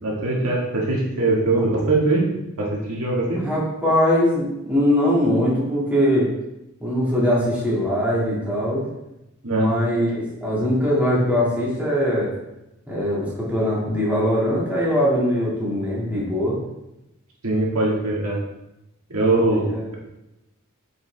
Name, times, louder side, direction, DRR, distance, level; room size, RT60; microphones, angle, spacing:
voice 1, 0.0-2.3 2.6-3.5 9.4-9.7 17.4-18.4 19.1-20.0, right 2 dB, 85° right, -3 dB, 2.0 m, -21 dB
voice 2, 3.4-6.3 6.8-8.9 9.5-12.3 12.9-16.6 19.5-19.8, equal, 5° right, -7 dB, 2.3 m, -21 dB
9.0 x 5.3 x 3.4 m, 0.91 s
head